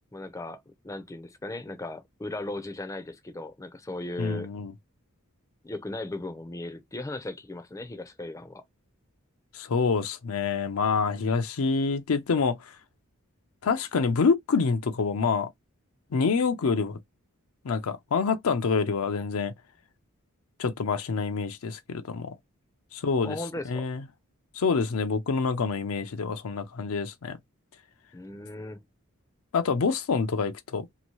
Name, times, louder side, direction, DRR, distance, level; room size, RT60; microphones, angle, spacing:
voice 1, 0.1-4.5 5.6-8.6 23.2-23.9 28.1-28.8, left 2 dB, 15° left, 0.5 m, -37 dB
voice 2, 4.2-4.7 9.5-12.8 13.6-15.5 16.1-17.0 17.6-19.5 20.6-22.4 22.9-23.4 23.7-24.0 24.5-27.4 29.5-30.9, left 5 dB, 75° left, 0.5 m, -26 dB
2.8 x 2.6 x 2.9 m
head